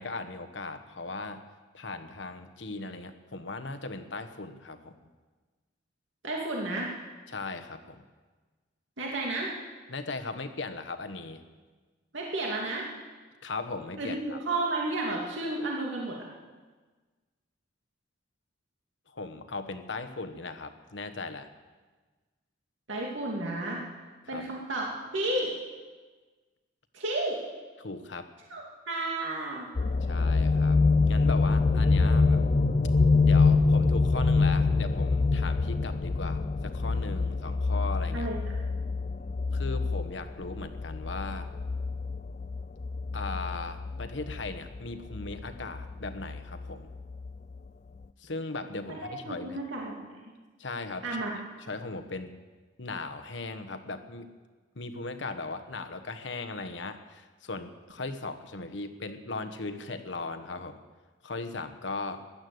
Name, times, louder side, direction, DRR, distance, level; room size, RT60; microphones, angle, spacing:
voice 1, 0.0-1.4 1.7-5.0 7.3-8.0 9.9-11.4 13.4-14.4 19.1-21.5 24.3-24.4 27.8-28.3 30.0-30.8 31.1-32.4 33.2-38.3 39.5-41.5 43.1-46.9 48.2-49.6 50.6-51.2 51.7-52.3 52.8-54.3 54.7-60.8 61.2-62.2, left 3 dB, 70° left, 9 dB, 1.2 m, -38 dB
voice 2, 6.2-6.9 9.0-9.5 12.1-12.9 14.0-14.2 14.5-16.3 22.9-23.8 24.3-25.5 26.9-27.4 28.5-29.7 38.1-38.4 49.2-50.2 51.0-51.3, right 2 dB, 80° right, -2 dB, 2.5 m, -32 dB
sound 1, 29.7-47.6 48.0-48.1, left 3 dB, 40° left, 0.5 m, -26 dB
16.0 x 11.5 x 7.9 m, 1.3 s
head